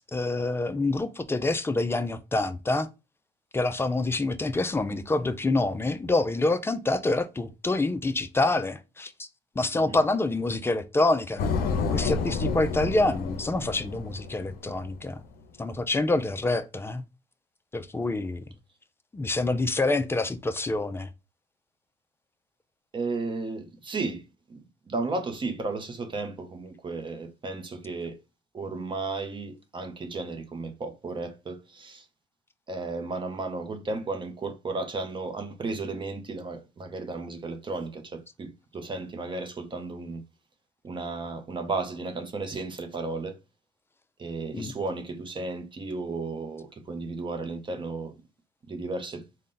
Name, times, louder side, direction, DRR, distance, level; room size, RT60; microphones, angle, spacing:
voice 1, 0.1-2.9 3.5-9.3 9.6-15.2 15.6-17.0 17.7-18.4 19.1-21.1 44.5-44.7, left 2 dB, 15° left, 0.4 m, -27 dB
sound 1, 11.4-15.1, left 4 dB, 65° left, 0.6 m, -30 dB
voice 2, 22.9-24.2 24.5-28.2 28.5-32.1 32.7-40.2 40.8-43.4 44.2-48.2 48.7-49.2, right 3 dB, 30° right, 0.6 m, -34 dB
3.8 x 2.1 x 3.8 m
cardioid pair, 110°, 17 cm